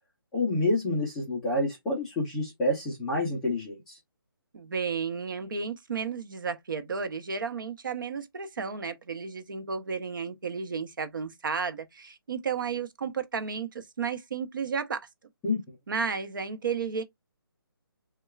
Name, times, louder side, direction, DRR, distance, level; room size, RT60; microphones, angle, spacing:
voice 1, 0.3-4.0 15.4-15.8, left 2 dB, 5° left, 0.4 m, -28 dB
voice 2, 4.5-15.1 15.9-17.0, right 5 dB, 55° right, 0.8 m, -33 dB
6.2 x 2.2 x 2.3 m
hypercardioid pair, 170°, 13 cm